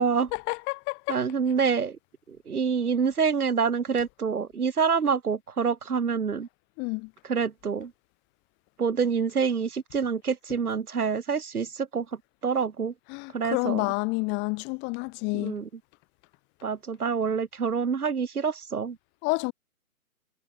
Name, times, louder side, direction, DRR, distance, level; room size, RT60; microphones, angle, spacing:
voice 1, 0.3-1.2 6.8-7.1 13.1-15.6 19.2-19.5, left 29 dB, 25° left, 5.8 m, -29 dB
voice 2, 1.1-2.0 2.5-6.5 7.3-7.9 8.8-12.1 12.4-12.9 13.3-13.9 15.3-15.7 16.6-19.0, right 6 dB, 75° right, 5.6 m, -26 dB
hypercardioid pair, 145°, 45 cm